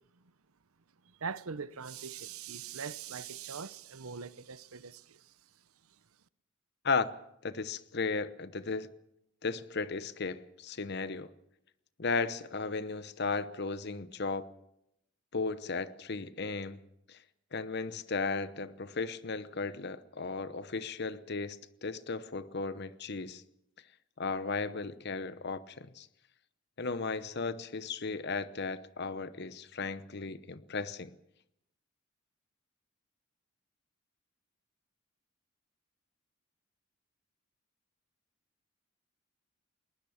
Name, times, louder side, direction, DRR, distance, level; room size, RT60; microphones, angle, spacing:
voice 1, 1.2-5.2, right 6 dB, 85° right, 0.9 m, -41 dB
voice 2, 7.4-8.9 9.4-11.3 12.0-14.5 15.3-16.8 17.1-17.2 17.5-23.4 24.2-26.1 26.8-31.1, left 4 dB, 50° left, 0.9 m, -35 dB
21.0 x 20.0 x 7.2 m
head